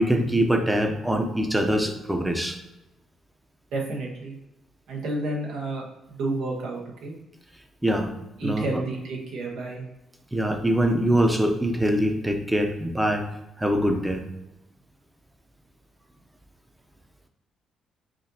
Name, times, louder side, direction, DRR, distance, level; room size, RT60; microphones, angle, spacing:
voice 1, 0.0-2.6 7.8-8.1 8.4-8.6 10.3-13.3 13.6-14.2, right 1 dB, 10° right, 5 dB, 0.6 m, -23 dB
voice 2, 3.7-4.4 4.9-7.1 8.4-9.9, right 2 dB, 85° right, -2 dB, 1.0 m, -30 dB
5.0 x 2.5 x 2.8 m, 0.91 s
cardioid pair, 90°, 0 cm